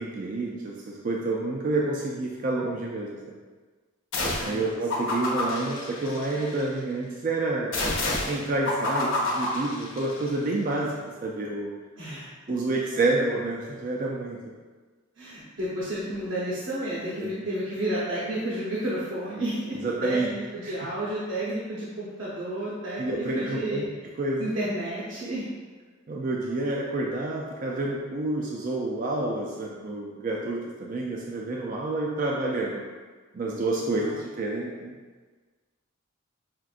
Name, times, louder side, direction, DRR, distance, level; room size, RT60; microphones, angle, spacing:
voice 1, 0.0-3.4 4.4-7.7 8.3-11.7 12.5-14.4 17.2-17.3 19.7-20.3 20.6-20.7 23.0-23.8 24.2-24.5 26.1-32.8 33.3-34.9, right 2 dB, 40° right, -2 dB, 0.4 m, -29 dB
sound 1, 4.1-4.6 4.9-6.6 7.7-10.3, left 2 dB, 65° left, 0.8 m, -29 dB
voice 2, 4.3-4.7 5.0-5.2 12.0-12.3 15.2-23.8 24.4-25.5 33.9-34.1, right 1 dB, 65° right, -9 dB, 0.8 m, -31 dB
5.8 x 2.5 x 2.5 m, 1.4 s
head